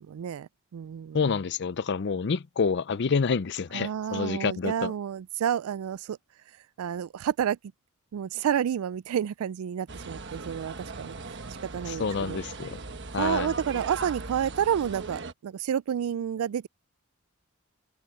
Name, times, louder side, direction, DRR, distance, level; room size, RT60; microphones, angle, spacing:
voice 1, 0.1-1.2 3.7-6.2 6.8-7.6 8.1-11.1 11.7-12.4 13.1-16.7, right 9 dB, 80° right, 0.3 m, -30 dB
voice 2, 1.1-4.9 11.9-12.8 13.1-13.5, left 5 dB, 50° left, 0.5 m, -28 dB
sound 1, 9.9-15.3, right 3 dB, 55° right, 1.3 m, -39 dB
head